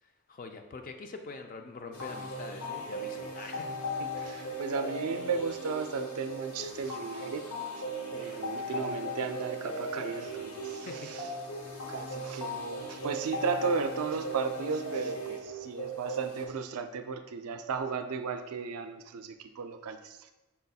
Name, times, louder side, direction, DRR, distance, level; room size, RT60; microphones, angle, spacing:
voice 1, 0.3-3.8 8.1-9.0 10.8-11.2, left 3 dB, 40° left, 6 dB, 0.3 m, -44 dB
sound 1, 1.9-16.5, equal, 90° left, 0.8 m, -38 dB
voice 2, 4.0-7.5 8.2-11.3 11.9-20.3, right 5 dB, 80° right, 8 dB, 0.4 m, -35 dB
5.8 x 4.0 x 2.3 m, 1.1 s
head